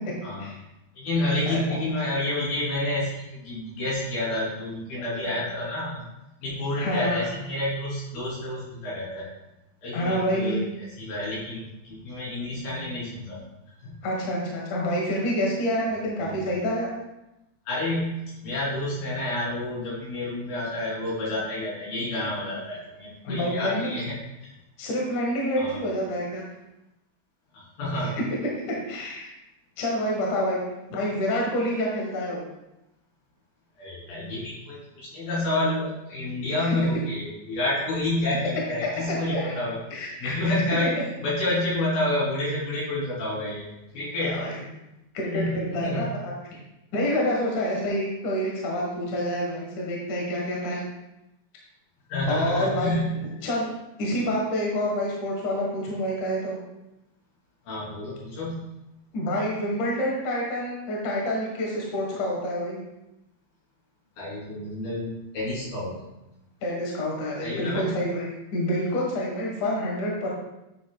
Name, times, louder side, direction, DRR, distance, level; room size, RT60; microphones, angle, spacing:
voice 1, 1.0-6.0 6.4-9.3 9.8-10.6 11.0-13.4 13.8-13.9 17.7-18.2 18.4-24.5 25.6-25.8 27.5-28.2 33.8-40.9 41.2-43.7 43.9-44.4 45.3-46.0 52.1-53.2 57.7-58.6 64.2-65.9 67.4-68.0, left 1 dB, 75° left, -7 dB, 4.9 m, -29 dB
voice 2, 1.5-1.8 5.0-5.4 6.8-7.3 9.9-10.6 14.0-16.9 23.2-24.0 24.8-26.4 27.9-28.2 28.9-29.3 29.8-30.6 30.9-32.4 36.6-36.7 39.1-39.5 39.9-40.6 44.2-44.7 45.1-46.3 46.9-50.8 52.3-53.0 53.4-53.7 54.0-56.6 59.1-62.8 66.6-70.3, equal, 60° left, -2 dB, 2.5 m, -28 dB
9.9 x 7.3 x 2.2 m, 0.93 s
omnidirectional pair, 4.3 m